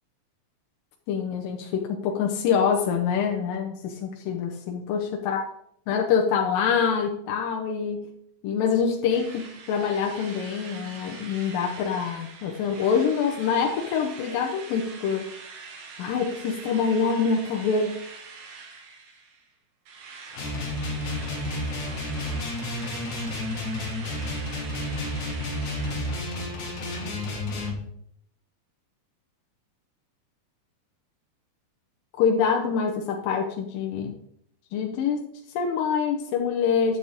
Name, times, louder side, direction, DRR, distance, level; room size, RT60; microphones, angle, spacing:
voice 1, 1.1-5.5 5.9-8.1 8.4-15.3 16.0-17.9 32.2-34.2 34.7-37.0, left 6 dB, 80° left, 1 dB, 2.5 m, -25 dB
Drill, 9.1-19.5 19.9-26.8, right 4 dB, 85° right, 3.2 m, -44 dB
sound 1, 20.3-27.8, left 1 dB, 60° left, 3.2 m, -31 dB
10.0 x 7.4 x 3.6 m, 0.69 s
omnidirectional pair, 3.9 m